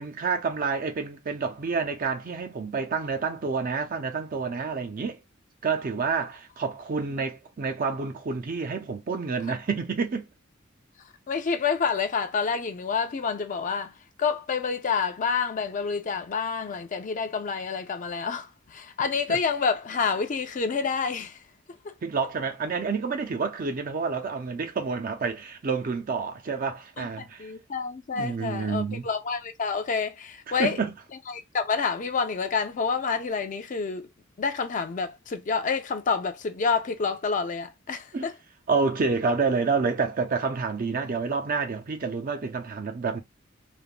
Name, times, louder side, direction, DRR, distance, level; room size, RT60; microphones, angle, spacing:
voice 1, 0.0-5.2 5.6-10.3 19.3-19.4 22.0-27.5 28.1-29.1 30.6-30.9 38.1-38.3 38.7-43.2, right 4 dB, 45° right, 0.5 m, -28 dB
voice 2, 11.3-21.4 21.8-21.9 27.0-30.8 31.3-34.1 34.4-38.3, left 5 dB, 40° left, 0.4 m, -28 dB
3.3 x 2.1 x 2.4 m
head